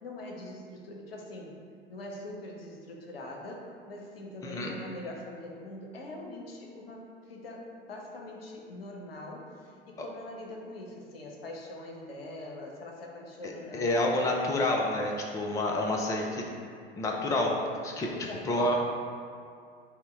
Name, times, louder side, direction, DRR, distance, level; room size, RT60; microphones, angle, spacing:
voice 1, 0.0-1.6 1.9-14.0 14.4-14.7 18.1-18.7, left 1 dB, 70° left, 0 dB, 0.8 m, -43 dB
voice 2, 4.4-4.7 10.0-10.1 13.4-16.5 16.9-17.5 17.8-18.1 18.5-18.7, left 2 dB, 10° left, 0 dB, 0.4 m, -28 dB
5.6 x 2.1 x 4.4 m, 2.3 s
figure-of-eight pair, 75°, 30 cm